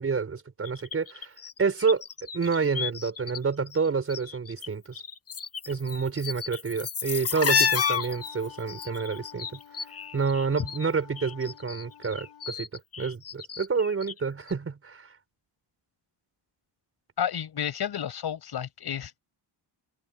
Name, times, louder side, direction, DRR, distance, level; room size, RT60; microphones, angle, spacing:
voice 1, 0.0-1.3 1.6-2.0 2.3-5.0 5.7-9.6 10.1-15.1, right 5 dB, 30° right, 4.7 m, -28 dB
sound 1, 0.6-3.4 3.7-4.7 4.9-10.9 11.2-14.2 14.5-14.6, left 6 dB, 30° left, 1.2 m, -31 dB
Wind instrument woodwind instrument, 7.1-12.5, left 10 dB, 75° left, 6.5 m, -48 dB
voice 2, 17.2-19.2, left 9 dB, 55° left, 5.8 m, -31 dB
wide cardioid pair, 170°, 46 cm